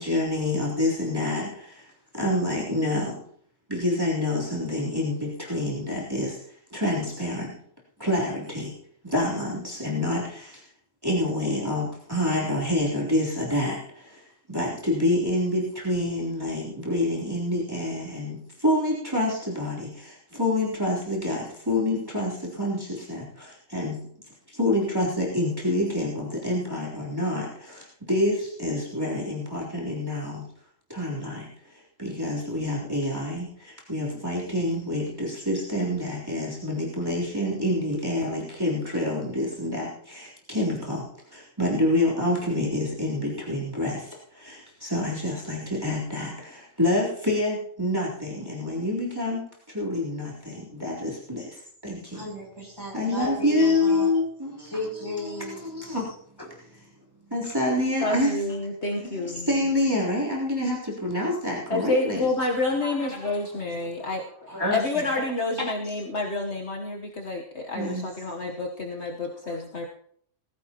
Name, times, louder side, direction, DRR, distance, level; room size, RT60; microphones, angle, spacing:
voice 1, 0.0-1.9 2.1-3.2 3.7-6.4 6.7-7.5 8.0-8.7 9.0-10.6 11.0-24.0 24.5-30.5 30.9-41.1 41.3-52.3 52.9-54.7 55.2-56.1 57.3-58.4 59.0-62.3 62.8-63.3 64.0-64.1 64.5-65.0 65.6-65.7 67.7-68.0, left 1 dB, 15° right, -6 dB, 3.5 m, -27 dB
voice 2, 52.1-54.1 54.6-56.0, left 1 dB, 15° left, -2 dB, 7.6 m, -35 dB
voice 3, 58.0-59.7 61.7-69.9, left 2 dB, 55° left, 0 dB, 1.5 m, -29 dB
19.5 x 15.5 x 3.0 m, 0.63 s
omnidirectional pair, 1.4 m